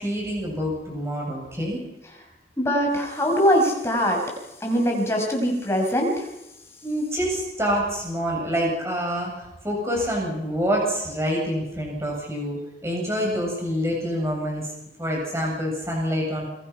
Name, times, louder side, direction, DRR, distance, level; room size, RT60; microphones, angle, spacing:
voice 1, 0.0-1.8 6.8-9.3 9.6-14.7 15.0-16.4, equal, 15° right, -2 dB, 7.9 m, -26 dB
voice 2, 2.6-4.2 4.6-6.3, equal, 15° left, 1 dB, 5.5 m, -22 dB
28.5 x 22.5 x 5.8 m, 0.91 s
head